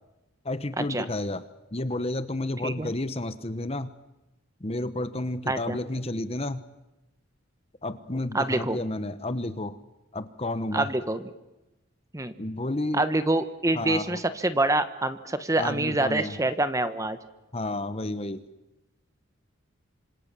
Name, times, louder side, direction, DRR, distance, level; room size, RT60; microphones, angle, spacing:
voice 1, 0.4-3.9 4.6-6.6 7.8-9.8 10.1-10.9 12.4-13.0 13.7-14.2 15.6-16.4 17.5-18.4, left 2 dB, 30° left, 12 dB, 1.0 m, -31 dB
voice 2, 5.5-5.8 8.3-8.8 10.7-11.3 12.1-12.3 12.9-17.2, right 2 dB, 15° right, 11 dB, 1.2 m, -26 dB
26.5 x 26.0 x 7.5 m, 0.98 s
head